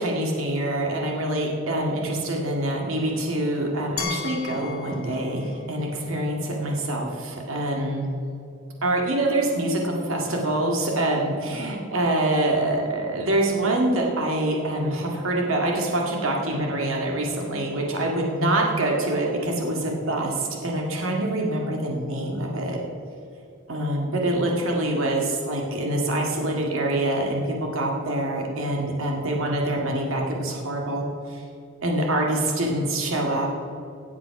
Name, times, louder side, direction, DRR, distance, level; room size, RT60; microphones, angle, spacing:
voice 1, 0.0-8.1 8.8-22.8 23.7-31.4 31.8-33.5, right 1 dB, 75° right, 0 dB, 1.9 m, -25 dB
Glass, 4.0-6.9, left 7 dB, 75° left, 1.5 m, -37 dB
17.0 x 7.5 x 5.9 m, 2.6 s
head